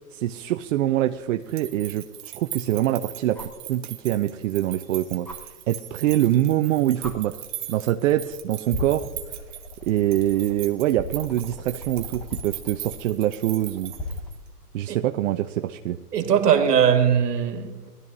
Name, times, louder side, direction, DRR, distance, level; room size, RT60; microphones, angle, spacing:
voice 1, 0.1-3.4 3.7-7.4 7.7-9.1 9.8-13.9 14.7-16.0, right 13 dB, 55° right, 0.5 m, -24 dB
sound 1, 1.4-14.5, right 14 dB, 25° right, 0.9 m, -39 dB
sound 2, 3.3-3.6 5.2-5.4 6.5-6.6 7.0-7.2 8.1-8.3 8.7-14.4 16.0-16.1, left 1 dB, 5° left, 1.5 m, -37 dB
voice 2, 16.1-17.9, right 8 dB, 80° right, 1.9 m, -20 dB
19.5 x 12.5 x 2.7 m
hypercardioid pair, 135°, 47 cm